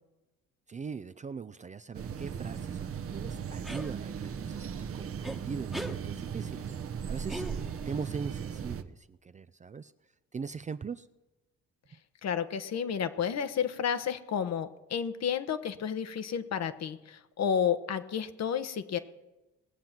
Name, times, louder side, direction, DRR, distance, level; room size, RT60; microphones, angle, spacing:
voice 1, 0.7-6.7 7.1-9.9 10.3-11.1 11.9-12.0, right 5 dB, 25° right, 13 dB, 0.4 m, -41 dB
sound 1, 1.9-8.8, right 7 dB, 50° right, 0.9 m, -37 dB
sound 2, 3.6-3.9 5.2-5.4 5.7-6.0 7.3-7.9, right 1 dB, ahead, 1.2 m, -39 dB
voice 2, 12.2-19.0, left 7 dB, 60° left, 10 dB, 1.0 m, -31 dB
19.5 x 7.6 x 5.9 m, 1.0 s
cardioid pair, 90°, 30 cm